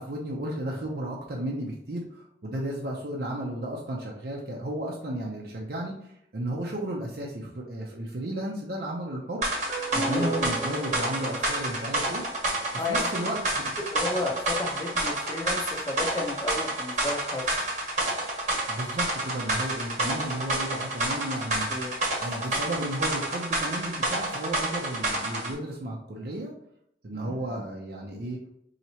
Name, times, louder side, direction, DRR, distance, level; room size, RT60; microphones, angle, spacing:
voice 1, 0.0-9.4 9.9-12.2 12.9-13.7 18.7-21.7 22.2-26.5 27.0-28.4, right 1 dB, 55° right, -2 dB, 0.6 m, -33 dB
sound 1, 9.4-25.5, right 1 dB, 40° right, 1.0 m, -29 dB
sound 2, 9.5-12.6, right 1 dB, 5° right, 0.9 m, -36 dB
voice 2, 10.1-10.4 12.7-13.4 13.8-17.4 21.7-21.9 27.1-27.7, left 2 dB, 20° left, 0 dB, 0.7 m, -33 dB
4.3 x 2.8 x 2.8 m, 0.74 s
head